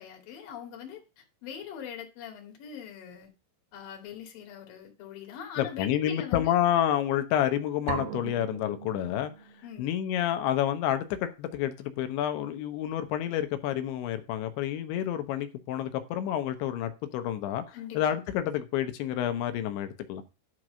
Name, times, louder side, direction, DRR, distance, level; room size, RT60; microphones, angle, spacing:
voice 1, 0.0-3.3 3.7-6.5 9.6-9.9 17.7-18.0, left 8 dB, 55° left, 3.7 m, -42 dB
voice 2, 5.6-9.3 9.8-20.2, left 11 dB, 75° left, 3.1 m, -29 dB
sound 1, 7.9-9.7, right 8 dB, 70° right, 2.4 m, -38 dB
12.0 x 4.6 x 6.3 m
omnidirectional pair, 5.5 m